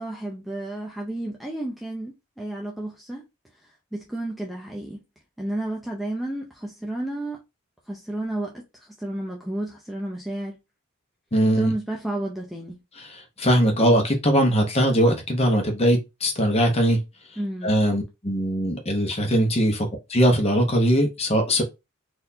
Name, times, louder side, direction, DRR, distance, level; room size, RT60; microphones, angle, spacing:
voice 1, 0.0-3.3 3.6-5.0 5.4-7.4 7.9-10.6 11.5-12.8 17.4-17.8, right 1 dB, ahead, 0.5 m, -32 dB
voice 2, 11.3-11.7 13.4-17.0 17.6-21.6, equal, 30° left, 1.0 m, -21 dB
4.0 x 2.7 x 2.7 m
head